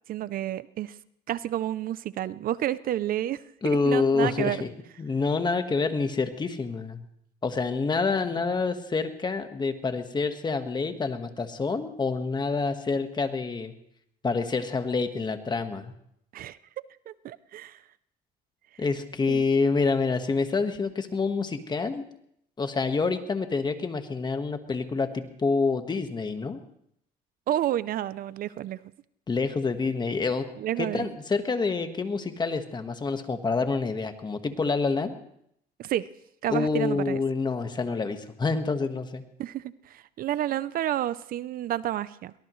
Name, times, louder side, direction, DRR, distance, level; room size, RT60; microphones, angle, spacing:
voice 1, 0.1-1.0 1.3-4.6 16.3-16.6 17.1-17.8 19.3-19.4 27.5-28.8 30.6-31.2 35.8-36.1 36.4-37.2 39.4-42.3, right 12 dB, 60° right, 17 dB, 0.5 m, -30 dB
voice 2, 3.6-4.7 5.0-7.0 7.4-13.7 14.2-15.9 18.8-22.0 22.6-26.6 29.3-30.5 30.8-35.1 36.5-39.2, left 4 dB, 25° left, 8 dB, 1.4 m, -27 dB
22.5 x 19.0 x 3.1 m, 0.73 s
cardioid pair, 110°, 17 cm